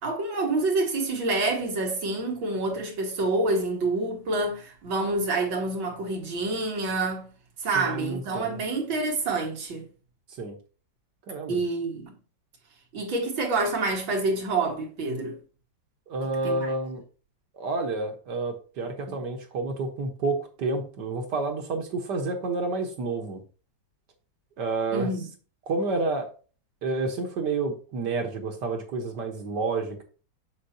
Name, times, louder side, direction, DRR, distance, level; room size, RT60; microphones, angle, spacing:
voice 1, 0.0-7.3 7.6-9.8 11.5-12.1 12.9-15.4 16.4-16.7 19.1-19.2 24.9-25.3, right 2 dB, 85° right, 2.7 m, -27 dB
voice 2, 7.8-8.6 10.4-10.6 11.3-11.6 16.1-17.0 17.6-23.4 24.6-25.1 25.7-26.3 26.8-30.0, right 3 dB, 65° right, 1.9 m, -29 dB
7.2 x 6.7 x 2.8 m
omnidirectional pair, 2.1 m